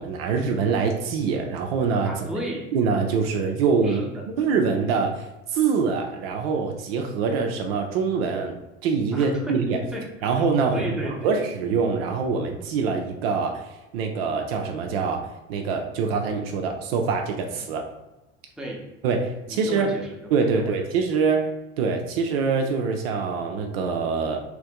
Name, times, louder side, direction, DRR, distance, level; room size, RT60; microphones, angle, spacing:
voice 1, 0.0-2.3 2.7-4.0 4.4-8.6 8.8-9.8 10.2-10.9 11.2-17.8 19.0-19.9 20.3-21.5 21.8-24.4, right 5 dB, 60° right, 3 dB, 0.5 m, -24 dB
voice 2, 2.0-2.7 3.8-4.5 9.1-10.3 10.7-11.3 18.6-18.9 19.5-20.1 20.5-20.9, right 1 dB, ahead, -2 dB, 0.8 m, -34 dB
3.0 x 2.5 x 3.5 m, 1.0 s
figure-of-eight pair, 65°, 34 cm